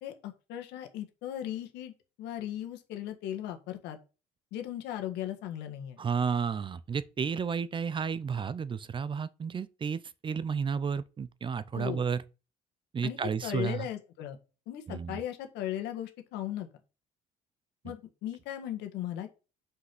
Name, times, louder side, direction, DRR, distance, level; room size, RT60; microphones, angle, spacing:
voice 1, 0.0-1.9 2.2-4.0 4.5-6.0 11.7-12.0 13.0-14.4 14.7-16.7 17.8-19.3, left 11 dB, 90° left, 1.7 m, -37 dB
voice 2, 6.0-12.2 12.9-13.9 14.9-15.2 17.8-17.9, right 6 dB, 30° right, 0.5 m, -32 dB
5.8 x 5.5 x 6.0 m
cardioid pair, 110°, 17 cm